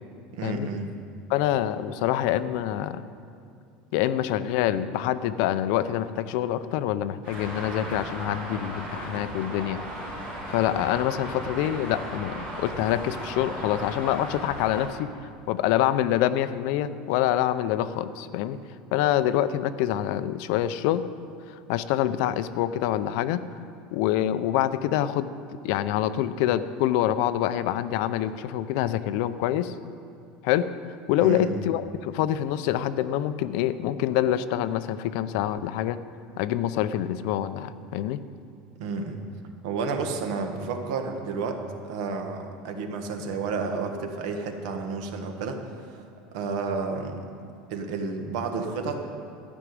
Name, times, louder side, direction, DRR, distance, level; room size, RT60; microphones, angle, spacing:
voice 1, 0.3-0.9 31.2-31.6 38.8-39.2 39.6-46.0 46.3-47.2 47.7-49.1, right 4 dB, 70° right, 5 dB, 1.4 m, -31 dB
voice 2, 1.3-3.0 3.9-9.8 10.5-15.1 15.5-18.6 18.9-21.1 21.7-23.4 23.9-25.3 25.6-29.7 30.4-30.7 31.1-36.0 36.4-38.2, left 12 dB, 55° left, 13 dB, 0.5 m, -26 dB
Traffic noise roadway noise, 7.2-14.9, equal, 25° right, 4.0 m, -36 dB
13.5 x 6.1 x 9.3 m, 2.4 s
cardioid pair, 180°, 3 cm